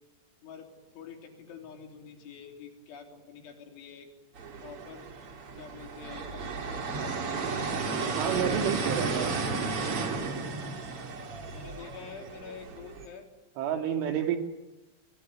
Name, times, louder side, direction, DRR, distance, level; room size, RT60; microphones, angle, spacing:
voice 1, 0.9-4.1 4.6-5.1 5.6-7.5 7.9-9.0 11.5-13.3 14.0-14.2, left 6 dB, 75° left, 4 dB, 5.9 m, -47 dB
sound 1, 4.4-13.1, right 4 dB, 40° right, 2.7 m, -33 dB
voice 2, 8.2-9.3 13.6-14.4, right 8 dB, 85° right, 6 dB, 4.8 m, -29 dB
28.0 x 22.0 x 9.3 m, 0.98 s
omnidirectional pair, 5.4 m